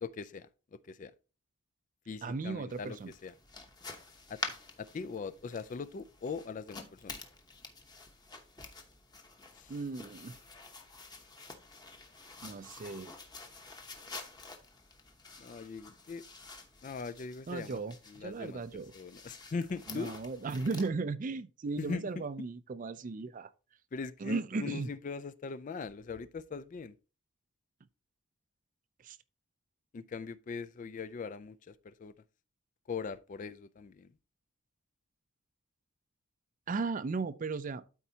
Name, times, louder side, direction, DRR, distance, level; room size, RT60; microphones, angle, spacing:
voice 1, 0.0-1.1 2.1-3.3 4.3-4.4 4.8-7.2 9.5-9.7 15.4-16.3 16.8-17.8 18.1-18.6 18.9-20.1 21.8-22.2 23.9-26.9 29.9-32.1 32.9-34.1, left 5 dB, 35° left, 0.3 m, -41 dB
voice 2, 2.2-3.1 9.7-10.4 12.4-13.1 17.5-18.9 19.9-23.5 24.2-24.9 29.0-29.2 36.7-37.8, right 4 dB, 35° right, 0.4 m, -36 dB
sound 1, 2.7-20.9, left 3 dB, 20° left, 0.9 m, -48 dB
12.5 x 4.4 x 2.8 m
head